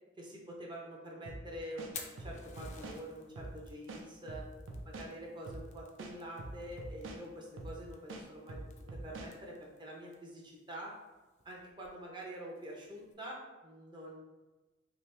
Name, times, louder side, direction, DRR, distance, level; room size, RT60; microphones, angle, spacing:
voice 1, 0.2-4.5 4.8-8.6 8.9-10.9 11.4-14.2, right 1 dB, 25° right, -2 dB, 0.6 m, -46 dB
sound 1, 1.3-1.4 1.8-3.0 3.4-3.5 3.9-5.1 5.5-5.6 6.0-7.2 7.6-7.8 8.1-9.3, right 2 dB, 75° right, 0.5 m, -44 dB
Fire, 1.7-13.1, left 5 dB, 40° left, 0.4 m, -56 dB
2.8 x 2.7 x 3.3 m, 1.2 s
head